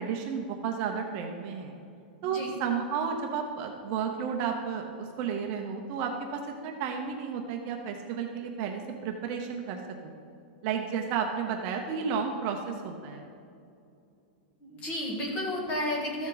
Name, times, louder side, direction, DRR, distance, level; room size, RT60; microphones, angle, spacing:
voice 1, 0.0-1.8 2.2-10.1 10.6-13.2, right 6 dB, 35° right, 3 dB, 0.8 m, -32 dB
voice 2, 14.6-16.3, left 1 dB, 25° left, -1 dB, 1.9 m, -32 dB
14.0 x 7.1 x 4.0 m, 2.5 s
supercardioid pair, 170°, 5 cm